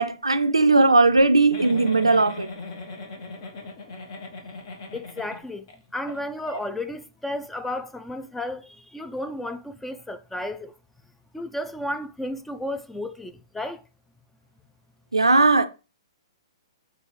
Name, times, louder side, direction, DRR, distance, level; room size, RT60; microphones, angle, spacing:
voice 1, 0.0-2.5 15.1-15.7, right 3 dB, 90° right, 0.4 m, -18 dB
Giggle, 1.5-5.7 6.1-6.2 6.5-6.6, left 3 dB, 50° left, 0.9 m, -38 dB
voice 2, 4.9-5.7 5.9-10.7 11.3-13.8, left 1 dB, 5° left, 0.3 m, -33 dB
6.1 x 2.5 x 3.0 m
figure-of-eight pair, 115°, 3 cm